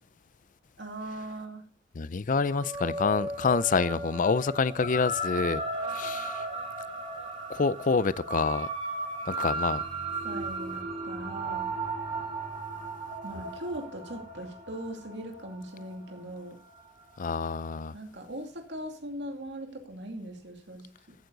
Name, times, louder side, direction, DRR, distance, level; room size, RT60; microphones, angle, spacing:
voice 1, 0.8-1.7 10.2-11.7 13.2-16.6 17.9-21.2, right 1 dB, 65° right, 2.5 m, -40 dB
voice 2, 2.0-5.6 5.9-6.4 7.5-8.7 9.3-9.8 17.2-17.9, left 4 dB, 45° left, 0.5 m, -27 dB
sound 1, 2.4-17.1, right 2 dB, 35° right, 4.3 m, -36 dB
14.5 x 9.4 x 3.9 m
head